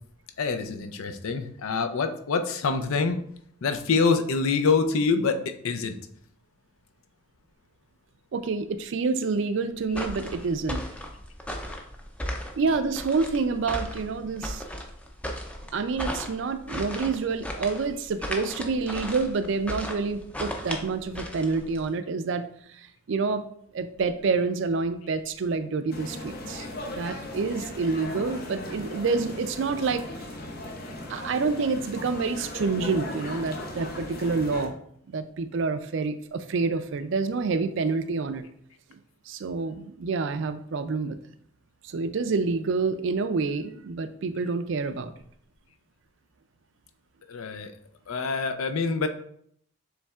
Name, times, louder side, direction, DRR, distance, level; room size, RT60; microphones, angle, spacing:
voice 1, 0.4-3.2 3.6-5.4 5.6-6.0 9.9-10.0 12.7-12.8 47.3-47.7 48.1-49.1, left 4 dB, 85° left, 8 dB, 0.5 m, -25 dB
voice 2, 8.3-10.8 12.6-14.6 15.7-23.4 23.7-30.1 31.1-34.7 35.1-38.4 38.9-39.0 39.3-41.2 41.8-45.1, right 4 dB, 60° right, 11 dB, 0.4 m, -28 dB
sound 1, 9.9-21.9, equal, 5° left, 0.4 m, -36 dB
sound 2, 25.9-34.7, left 1 dB, 45° left, 0.7 m, -37 dB
6.9 x 3.2 x 2.3 m, 0.67 s
head